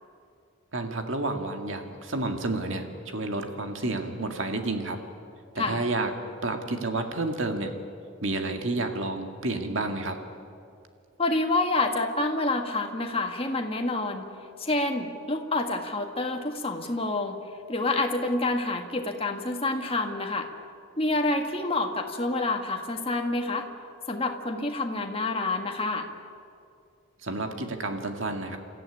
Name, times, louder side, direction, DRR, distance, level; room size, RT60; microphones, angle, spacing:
voice 1, 0.7-5.0 5.5-6.1 6.4-7.7 8.2-10.2 27.2-28.6, right 2 dB, 60° right, 5 dB, 2.1 m, -30 dB
voice 2, 11.2-14.3 14.6-17.4 17.7-20.5 21.0-23.7 24.1-26.1, left 2 dB, 25° left, 4 dB, 1.7 m, -28 dB
28.5 x 14.0 x 9.9 m, 2.4 s
head